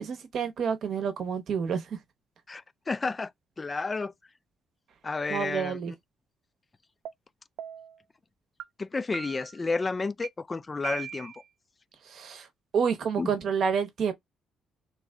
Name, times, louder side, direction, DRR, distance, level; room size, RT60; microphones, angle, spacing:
voice 1, 0.0-1.9 5.3-5.9 12.1-12.5 12.7-14.1, right 6 dB, 65° right, 0.8 m, -29 dB
voice 2, 2.5-3.3 3.6-4.1 5.0-5.9 8.8-11.3 13.2-13.3, left 3 dB, 30° left, 0.3 m, -31 dB
sound 1, 7.0-7.1 7.6-8.0 8.6-8.7 9.1-9.6 10.2-10.3 10.8-11.4, right 10 dB, 85° right, 0.3 m, -39 dB
2.9 x 2.2 x 3.7 m
cardioid pair, 90°, 0 cm